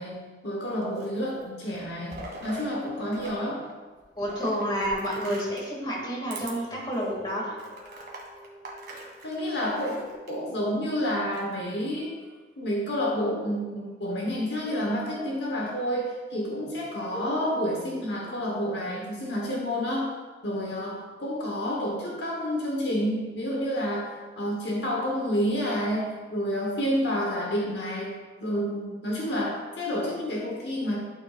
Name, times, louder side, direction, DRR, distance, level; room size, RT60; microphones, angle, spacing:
voice 1, 0.0-3.6 9.2-12.1 12.6-20.2 20.4-31.0, equal, 60° left, -2 dB, 1.1 m, -29 dB
sound 1, 0.7-1.4 1.7-3.4 3.6-5.8 6.3-6.5 7.0-7.1 7.6-10.3 11.1-11.7, right 2 dB, 55° right, 1.7 m, -42 dB
voice 2, 4.2-7.5, equal, 25° left, -3 dB, 2.1 m, -29 dB
sound 2, 7.0-12.4 14.6-16.1 16.4-16.5 17.1-19.3, equal, ahead, 1.1 m, -46 dB
12.0 x 7.1 x 2.4 m, 1.4 s
head